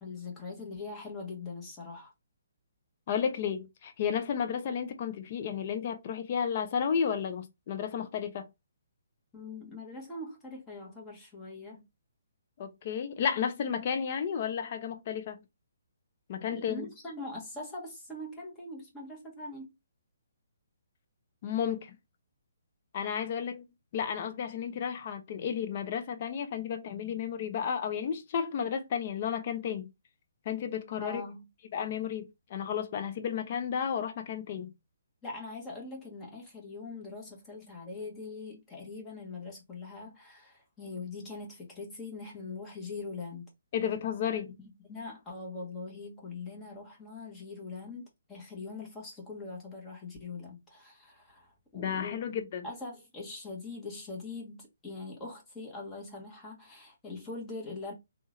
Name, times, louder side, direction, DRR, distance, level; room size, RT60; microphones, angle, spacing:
voice 1, 0.0-2.1 9.3-11.8 16.5-19.7 31.0-31.5 35.2-43.5 44.6-52.2 52.6-57.9, left 3 dB, 15° left, 1.5 m, -42 dB
voice 2, 3.1-8.5 12.6-15.4 16.3-16.9 21.4-21.9 22.9-23.6 23.9-29.9 30.4-31.2 31.7-34.7 43.7-44.5 51.7-52.7, left 7 dB, 35° left, 0.8 m, -32 dB
3.6 x 3.1 x 2.6 m
figure-of-eight pair, 135°, 0 cm